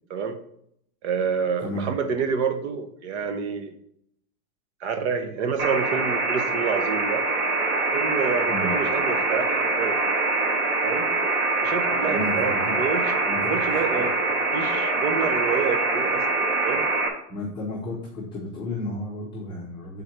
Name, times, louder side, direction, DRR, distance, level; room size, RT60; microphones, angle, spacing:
voice 1, 1.0-3.7 4.8-7.2 7.9-10.0 10.8-11.1 11.6-16.9, right 6 dB, 50° right, 8 dB, 1.0 m, -28 dB
sound 1, 5.6-17.1, right 3 dB, 30° right, 1.0 m, -24 dB
voice 2, 11.9-12.8 13.3-13.8 17.3-20.0, left 1 dB, 10° left, -7 dB, 0.7 m, -32 dB
7.6 x 4.0 x 4.4 m, 0.72 s
supercardioid pair, 170°, 44 cm